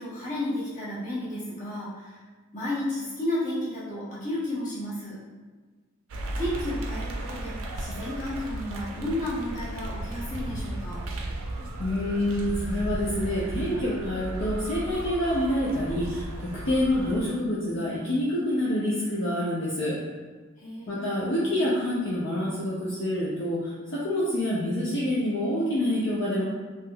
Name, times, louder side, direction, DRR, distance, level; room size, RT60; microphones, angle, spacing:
voice 1, 0.0-2.2 2.5-5.2 6.3-11.1 20.6-21.3, left 1 dB, 35° left, -9 dB, 1.2 m, -32 dB
sound 1, 6.1-17.2, right 1 dB, 70° right, 0.4 m, -35 dB
voice 2, 11.8-20.0 20.9-26.4, left 1 dB, 55° left, -6 dB, 0.5 m, -27 dB
3.4 x 2.9 x 2.2 m, 1.4 s
head